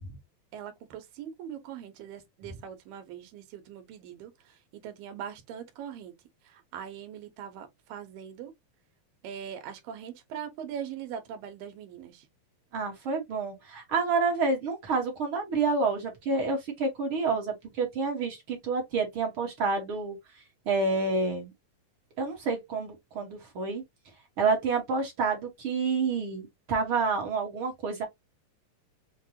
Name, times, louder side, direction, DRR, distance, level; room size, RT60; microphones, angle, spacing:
voice 1, 0.5-6.1 6.4-8.5 9.2-12.3, right 8 dB, 85° right, 2.6 m, -41 dB
voice 2, 12.7-20.2 20.6-21.5 22.2-23.8 24.4-28.0, right 4 dB, 60° right, 1.4 m, -28 dB
6.5 x 2.2 x 2.7 m
omnidirectional pair, 4.0 m